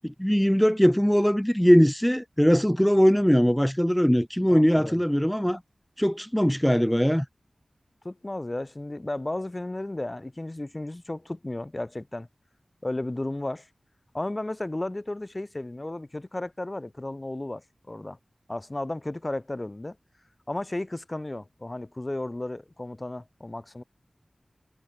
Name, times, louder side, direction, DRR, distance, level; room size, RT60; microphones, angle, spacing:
voice 1, 0.0-5.6 6.0-7.3, equal, 5° left, 0.6 m, -21 dB
voice 2, 4.5-5.0 8.0-12.3 12.8-13.7 14.1-18.2 18.5-20.0 20.5-23.8, left 1 dB, 30° left, 5.6 m, -34 dB
wide cardioid pair, 50°, 0 cm